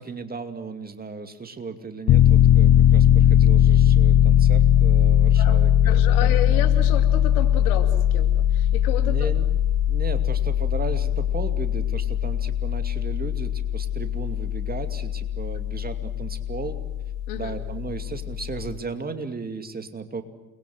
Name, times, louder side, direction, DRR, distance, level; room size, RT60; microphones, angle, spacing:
voice 1, 0.0-6.7 9.0-9.5 9.9-16.8 17.3-20.2, right 4 dB, 20° right, 7 dB, 2.5 m, -36 dB
Piano, 2.1-18.8, left 10 dB, 35° left, 1.2 m, -20 dB
voice 2, 5.4-9.3 17.3-17.6, left 11 dB, 70° left, 7 dB, 2.8 m, -32 dB
29.0 x 22.0 x 8.0 m, 0.97 s
hypercardioid pair, 80°, 46 cm